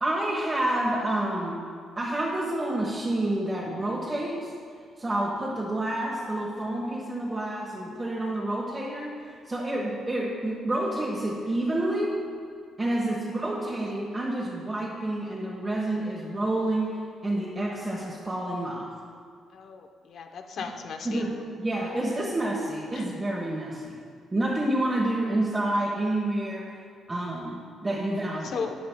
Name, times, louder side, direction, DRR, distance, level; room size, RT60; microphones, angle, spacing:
voice 1, 0.0-1.6 2.0-4.5 5.0-12.2 12.8-18.9 20.6-20.7 21.0-24.0 24.3-26.8 27.1-28.6, right 1 dB, 20° right, -4 dB, 1.2 m, -29 dB
voice 2, 19.5-21.3 22.9-23.0 28.5-28.8, left 6 dB, 65° left, 5 dB, 0.7 m, -36 dB
12.5 x 8.6 x 2.2 m, 2.2 s
cardioid pair, 90°, 0 cm